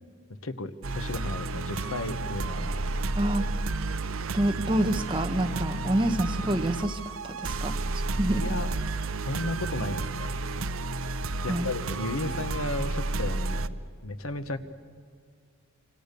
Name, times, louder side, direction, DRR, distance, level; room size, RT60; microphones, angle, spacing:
voice 1, 0.4-3.0 8.3-8.7 9.2-10.4 11.4-14.6, left 2 dB, 75° left, 11 dB, 1.2 m, -34 dB
sound 1, 0.8-13.7, right 3 dB, 70° right, 0.7 m, -31 dB
voice 2, 3.2-3.5 4.3-7.7 8.2-8.4 11.5-11.7, right 1 dB, 20° right, 6 dB, 1.2 m, -27 dB
26.5 x 26.5 x 6.9 m, 2.1 s
head